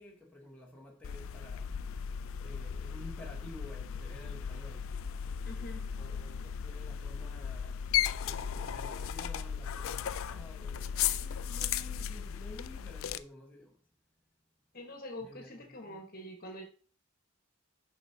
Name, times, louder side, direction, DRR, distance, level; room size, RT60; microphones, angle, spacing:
voice 1, 0.0-1.7 2.4-4.9 5.9-7.9 8.2-13.8 15.2-15.5 15.8-16.0, left 1 dB, 5° left, 1.2 m, -51 dB
sound 1, 1.0-13.2, left 8 dB, 75° left, 0.4 m, -36 dB
voice 2, 5.4-5.9 14.7-16.6, left 1 dB, 45° left, 1.3 m, -45 dB
7.1 x 5.6 x 2.8 m
head